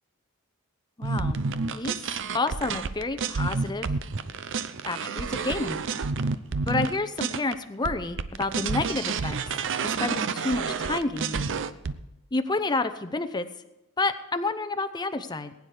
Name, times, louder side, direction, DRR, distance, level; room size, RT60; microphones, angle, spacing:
voice 1, 1.0-1.4 1.7-2.0 2.3-3.9 4.8-5.8 6.7-9.5 9.8-11.5 12.3-13.5 14.0-15.5, left 3 dB, 20° left, 9 dB, 0.7 m, -29 dB
sound 1, 1.0-7.5 7.8-11.9, right 4 dB, 60° right, 0.7 m, -29 dB
20.0 x 9.6 x 4.9 m, 0.96 s
head